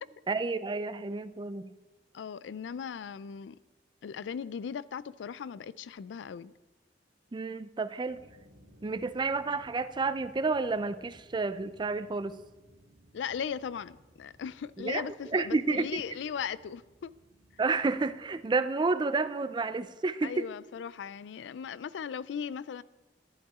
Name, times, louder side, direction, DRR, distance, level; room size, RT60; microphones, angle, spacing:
voice 1, 0.3-1.7 7.3-8.2 8.8-12.4 14.8-16.0 17.6-20.4, right 3 dB, 25° right, 0.4 m, -30 dB
voice 2, 2.1-3.6 4.0-6.5 13.1-17.2 20.2-22.8, left 7 dB, 80° left, 0.3 m, -38 dB
sound 1, 8.1-18.4, equal, 70° right, 1.9 m, -60 dB
11.0 x 11.0 x 3.6 m
head